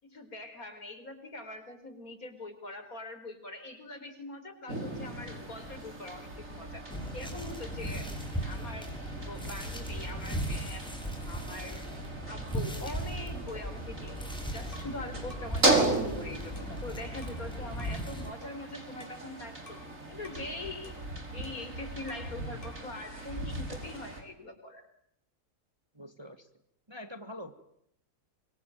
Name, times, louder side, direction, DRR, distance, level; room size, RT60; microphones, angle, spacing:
voice 1, 0.0-6.8 7.1-8.1 8.4-10.9 11.2-11.9 12.3-19.8 20.1-21.0 21.3-24.9, left 2 dB, 60° left, 8 dB, 5.0 m, -43 dB
sound 1, 4.7-24.2, right 2 dB, 50° right, 5.8 m, -36 dB
sound 2, 6.9-18.3, right 1 dB, 5° left, 6.4 m, -38 dB
sound 3, 13.5-15.0 15.3-15.6 15.9-17.5 17.8-18.0 18.4-19.9 20.2-20.5 20.8-22.4 22.6-22.9, left 2 dB, 30° left, 7.6 m, -54 dB
voice 2, 25.9-26.5 26.9-27.5, left 1 dB, 15° right, 8 dB, 1.9 m, -45 dB
26.0 x 24.5 x 9.4 m, 0.73 s
omnidirectional pair, 1.7 m